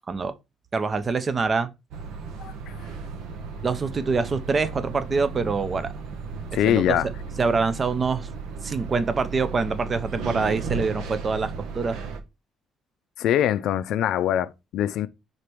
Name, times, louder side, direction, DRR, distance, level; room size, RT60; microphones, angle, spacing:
voice 1, 0.7-1.7 3.6-5.9 6.6-7.0 7.4-8.3 8.6-12.0, right 4 dB, 25° right, 0.5 m, -25 dB
sound 1, 1.9-12.2, right 5 dB, 85° right, 1.0 m, -35 dB
voice 2, 2.4-2.9 6.5-7.1 13.2-15.1, left 11 dB, 70° left, 0.4 m, -23 dB
5.1 x 4.1 x 4.5 m
cardioid pair, 160°, 0 cm